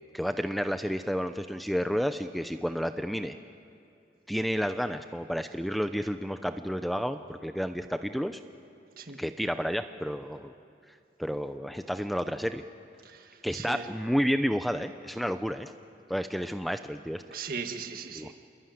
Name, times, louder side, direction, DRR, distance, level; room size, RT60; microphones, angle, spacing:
voice 1, 0.1-3.4 4.3-8.4 9.2-10.5 11.2-12.6 13.4-15.7 16.1-17.2 18.1-18.3, equal, ahead, 8 dB, 0.6 m, -31 dB
voice 2, 13.0-13.9 17.3-18.3, right 5 dB, 55° right, 6 dB, 1.7 m, -38 dB
27.5 x 22.0 x 9.4 m, 2.6 s
head